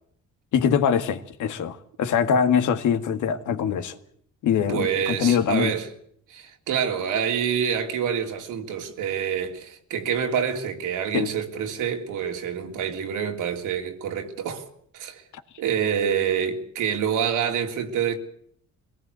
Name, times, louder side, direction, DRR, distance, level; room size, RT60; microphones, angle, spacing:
voice 1, 0.5-4.0 4.4-5.7 11.1-11.3, left 7 dB, 80° left, 1.9 m, -23 dB
voice 2, 4.5-5.9 6.3-14.7 14.9-15.2 15.6-18.2, right 8 dB, 90° right, 3.2 m, -27 dB
23.0 x 18.5 x 8.1 m
cardioid pair, 90°, 30 cm